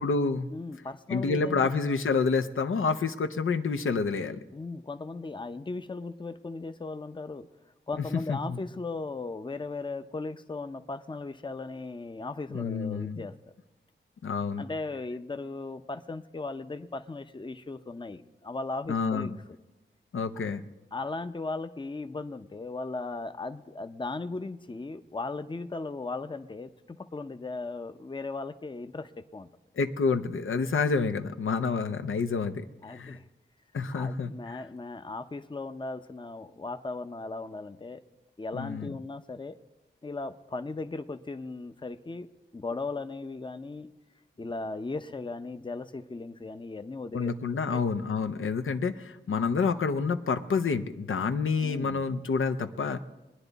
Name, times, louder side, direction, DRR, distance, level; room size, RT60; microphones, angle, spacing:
voice 1, 0.0-0.5 1.1-4.4 8.3-8.6 12.5-13.2 14.2-14.7 18.9-19.4 20.1-20.6 29.8-33.2 33.7-34.6 38.5-39.0 47.1-53.0, left 4 dB, 90° left, 8 dB, 0.7 m, -28 dB
voice 2, 0.5-1.7 4.5-7.5 7.9-13.3 14.6-19.3 20.9-29.5 32.8-33.2 33.9-38.0 38.4-39.6 40.0-42.3 42.5-43.9 44.4-47.3 47.7-47.8 51.6-52.1, left 3 dB, 25° left, 9 dB, 0.6 m, -37 dB
22.0 x 9.9 x 4.0 m, 1.0 s
wide cardioid pair, 85°, 20 cm